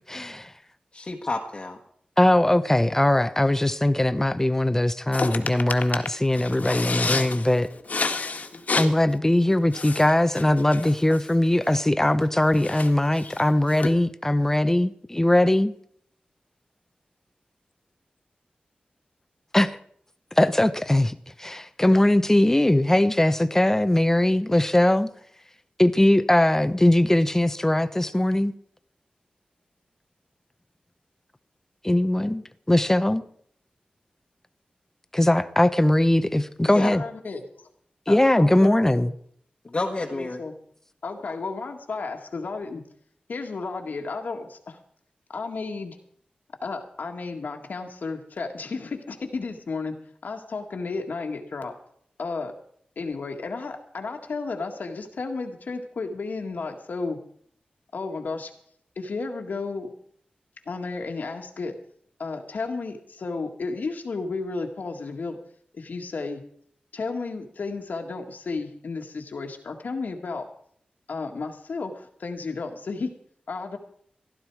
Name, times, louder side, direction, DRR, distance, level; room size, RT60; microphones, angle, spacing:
voice 1, 0.1-0.5 2.2-7.7 8.8-15.7 19.5-19.8 20.3-25.1 25.8-28.5 31.8-33.2 35.1-37.0 38.1-39.1, left 1 dB, 15° left, 0.9 m, -20 dB
voice 2, 0.9-1.8 36.6-36.9 39.6-40.4 41.2-41.3, left 2 dB, 40° left, 1.4 m, -30 dB
voice 3, 5.1-5.8 6.3-8.9 9.7-10.0 10.3-10.8 12.6-13.4 13.8-13.9, left 4 dB, 60° left, 1.7 m, -30 dB
voice 4, 36.7-37.7 38.1-39.1 40.2-40.5 41.0-42.8 43.3-44.8 45.3-46.0 46.6-49.9 50.2-51.7 52.2-52.5 52.9-57.2 57.9-58.5 58.9-59.9 60.6-61.8 62.2-65.4 65.7-66.4 66.9-70.4 71.1-73.1 73.5-73.8, left 4 dB, 75° left, 1.8 m, -33 dB
16.0 x 12.0 x 4.8 m
wide cardioid pair, 75°, 3 cm